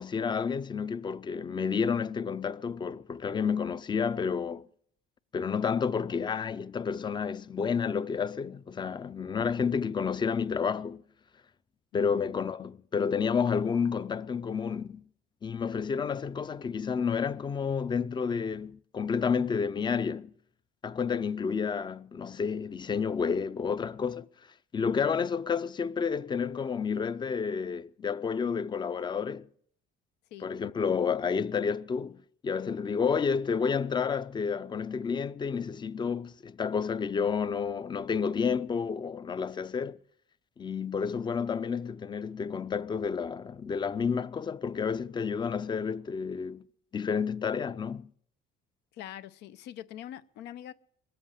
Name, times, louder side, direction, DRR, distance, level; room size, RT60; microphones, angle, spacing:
voice 1, 0.0-4.7 5.3-11.0 11.9-15.0 15.4-20.3 20.8-24.3 24.7-29.5 30.4-40.0 40.6-46.6 46.9-48.1, left 6 dB, 25° left, 0.5 m, -30 dB
voice 2, 11.9-12.3 30.3-30.5 48.9-50.7, left 11 dB, 85° left, 0.7 m, -44 dB
21.0 x 7.8 x 6.6 m
cardioid pair, 110°, 17 cm